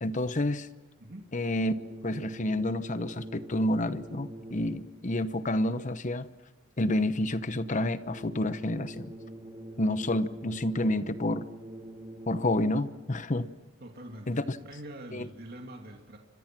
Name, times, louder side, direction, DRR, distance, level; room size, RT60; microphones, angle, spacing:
voice 1, 0.0-0.7 1.3-1.7 2.0-6.3 6.8-9.1 9.8-11.4 12.3-13.5 14.3-14.6 15.1-15.3, left 1 dB, 40° left, 13 dB, 1.0 m, -29 dB
voice 2, 1.0-1.3 13.8-16.2, right 1 dB, 50° right, 2 dB, 2.6 m, -45 dB
sound 1, 1.6-5.1 8.0-13.1, right 1 dB, 25° right, 1.5 m, -45 dB
29.5 x 25.0 x 6.1 m, 1.2 s
head